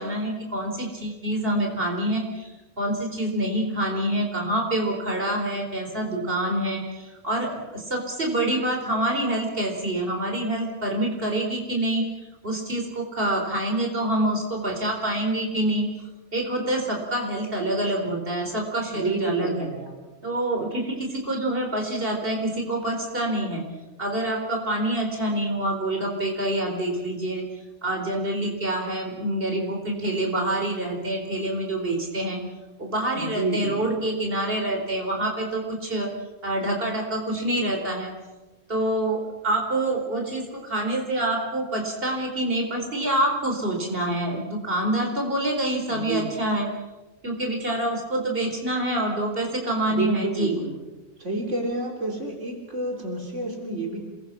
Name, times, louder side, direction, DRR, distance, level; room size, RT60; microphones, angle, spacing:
voice 1, 0.0-2.5 2.8-12.0 12.4-15.9 16.3-19.7 20.2-23.6 24.0-27.4 27.8-32.4 32.8-36.1 36.4-38.1 38.7-46.7 47.2-50.6, right 1 dB, 50° right, 2 dB, 4.5 m, -26 dB
voice 2, 18.9-20.0 33.1-33.8 45.9-46.3 49.9-50.8 51.2-54.0, right 2 dB, 85° right, 1 dB, 4.0 m, -29 dB
28.0 x 22.5 x 5.9 m, 1.1 s
omnidirectional pair, 1.2 m